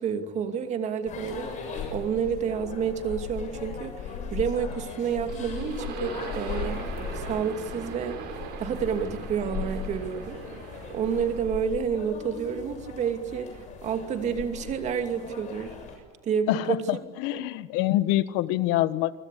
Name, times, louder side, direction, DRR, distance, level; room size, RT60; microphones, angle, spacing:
voice 1, 0.0-8.3 8.6-10.4 10.9-15.8 16.2-16.8 17.3-17.5, right 7 dB, 35° right, 7 dB, 2.6 m, -30 dB
sound 1, 1.1-16.0, left 5 dB, 40° left, 7.0 m, -37 dB
sound 2, 5.3-11.6, right 6 dB, 55° right, 6.0 m, -41 dB
voice 2, 16.5-19.2, left 15 dB, 70° left, 15 dB, 1.3 m, -26 dB
28.5 x 20.5 x 8.4 m, 1.5 s
cardioid pair, 150°, 19 cm